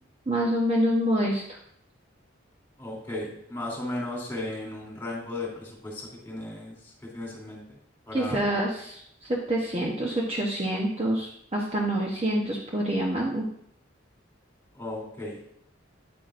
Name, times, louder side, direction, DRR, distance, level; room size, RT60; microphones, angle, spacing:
voice 1, 0.3-1.6 8.1-9.0 9.3-13.5, right 1 dB, 30° right, -2 dB, 0.9 m, -26 dB
voice 2, 2.8-7.8 8.1-8.5 14.7-15.4, left 2 dB, 10° left, -5 dB, 3.0 m, -36 dB
9.5 x 8.4 x 2.5 m, 0.70 s
head